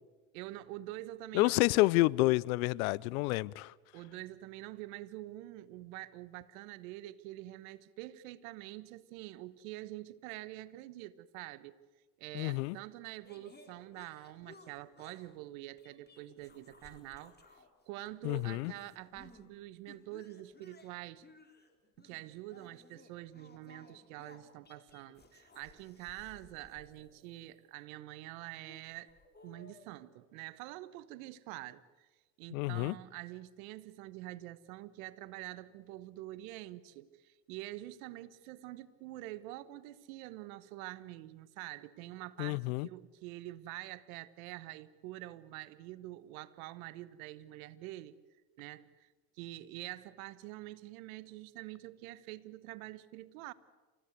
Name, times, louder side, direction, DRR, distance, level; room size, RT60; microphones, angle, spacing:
voice 1, 0.3-1.9 3.9-11.8 12.2-17.3 17.9-21.2 22.0-29.1 29.4-32.1 32.4-48.2 48.6-49.1 49.3-53.5, right 16 dB, 80° right, 1.2 m, -46 dB
voice 2, 1.3-3.7 12.3-12.8 18.2-18.7 32.5-32.9 42.4-42.9, left 21 dB, 80° left, 0.7 m, -29 dB
sound 1, 13.2-15.3 15.8-17.7 18.0-19.5 19.9-27.8 28.6-30.0, left 3 dB, 25° left, 4.2 m, -60 dB
28.5 x 16.0 x 8.2 m
hypercardioid pair, 70°, 42 cm